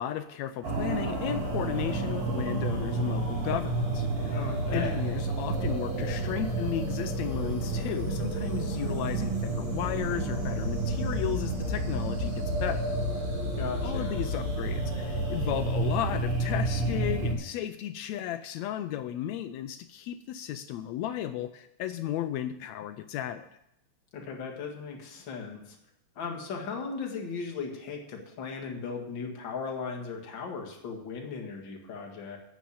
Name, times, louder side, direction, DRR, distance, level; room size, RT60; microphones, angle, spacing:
voice 1, 0.0-12.9 13.8-23.5, left 11 dB, 80° left, 10 dB, 1.6 m, -34 dB
sound 1, 0.6-17.3, right 2 dB, 55° right, 4.3 m, -30 dB
voice 2, 4.3-5.0 13.6-14.2 24.1-25.8 26.2-32.4, left 5 dB, 45° left, 1 dB, 2.2 m, -37 dB
9.2 x 7.2 x 8.5 m, 0.80 s
omnidirectional pair, 3.6 m